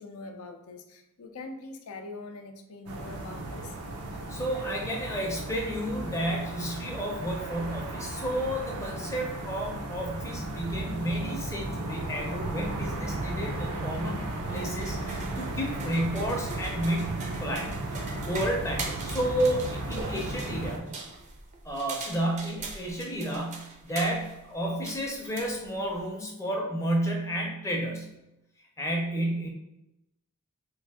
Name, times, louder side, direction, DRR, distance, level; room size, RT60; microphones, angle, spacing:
voice 1, 0.0-3.7, left 3 dB, 70° left, 5 dB, 0.5 m, -43 dB
sound 1, 2.9-20.8, right 2 dB, 90° right, 0.5 m, -35 dB
voice 2, 4.3-14.2 14.5-20.9 21.6-28.1 28.8-29.5, equal, 15° left, 0 dB, 0.6 m, -31 dB
sound 2, 14.4-26.1, right 3 dB, 35° right, 0.4 m, -42 dB
3.3 x 2.5 x 3.5 m, 0.91 s
head